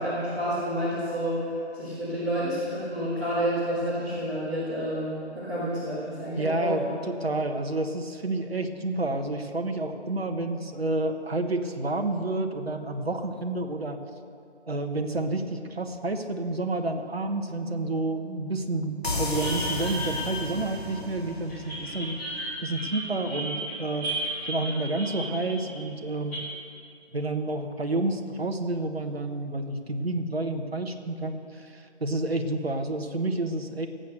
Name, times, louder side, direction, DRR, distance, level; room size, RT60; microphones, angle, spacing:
voice 1, 0.0-1.4 1.7-5.1 5.3-6.7, equal, 15° right, -12 dB, 1.9 m, -29 dB
voice 2, 6.4-14.0 14.7-22.2 22.6-24.1 24.5-26.4 27.1-33.9, right 2 dB, 60° right, 5 dB, 1.3 m, -29 dB
sound 1, 19.0-22.6, left 1 dB, 60° left, 2.3 m, -33 dB
sound 2, 19.3-21.1 21.5-26.4, equal, 5° left, 1.9 m, -35 dB
17.0 x 7.7 x 6.8 m, 2.5 s
figure-of-eight pair, 155°, 34 cm